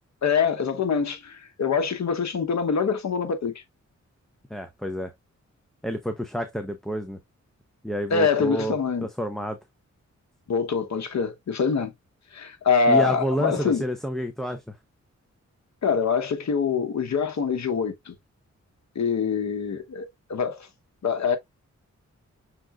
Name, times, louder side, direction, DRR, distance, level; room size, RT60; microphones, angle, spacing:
voice 1, 0.2-3.6 8.1-9.1 10.5-11.9 12.3-13.8 15.8-18.1 18.9-20.7 21.0-21.4, left 5 dB, 70° left, 1.0 m, -24 dB
voice 2, 4.5-5.1 5.8-7.2 7.8-9.6 12.9-14.7, equal, ahead, 0.6 m, -29 dB
6.0 x 3.8 x 2.3 m
wide cardioid pair, 95°, 29 cm